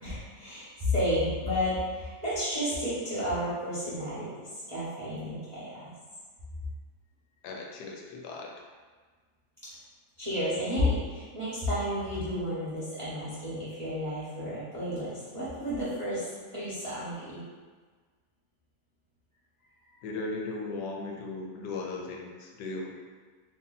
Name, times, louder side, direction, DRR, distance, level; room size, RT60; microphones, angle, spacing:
voice 1, 0.0-4.3 4.7-5.9 10.2-16.2 16.5-17.4, left 1 dB, 25° right, -12 dB, 0.7 m, -31 dB
voice 2, 7.4-8.5 20.0-22.9, left 3 dB, 80° left, 0 dB, 1.2 m, -37 dB
2.8 x 2.6 x 3.9 m, 1.5 s
omnidirectional pair, 1.8 m